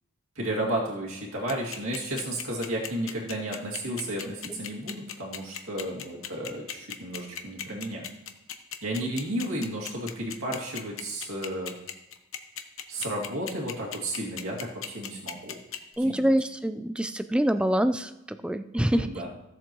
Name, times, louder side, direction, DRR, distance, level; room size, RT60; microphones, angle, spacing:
voice 1, 0.4-8.1 8.8-11.7 12.9-15.6 16.0-16.2 18.9-19.3, right 1 dB, 85° right, -3 dB, 2.3 m, -33 dB
sound 1, 1.5-16.0, left 10 dB, 75° left, 0.8 m, -36 dB
voice 2, 4.2-4.6 16.0-19.1, equal, 5° right, 10 dB, 0.3 m, -26 dB
15.5 x 7.4 x 3.0 m, 0.91 s
head